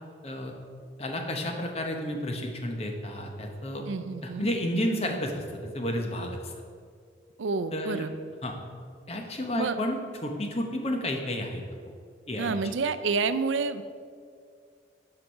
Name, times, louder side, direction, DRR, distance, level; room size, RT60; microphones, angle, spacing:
voice 1, 1.0-3.8 4.2-6.5 7.7-8.0 8.4-8.5 9.1-11.6 12.3-12.7, left 1 dB, 35° left, 3 dB, 0.9 m, -31 dB
voice 2, 3.9-4.5 7.4-8.1 9.6-9.8 12.4-13.8, right 4 dB, 85° right, 12 dB, 0.5 m, -29 dB
11.5 x 4.8 x 4.7 m, 2.2 s
head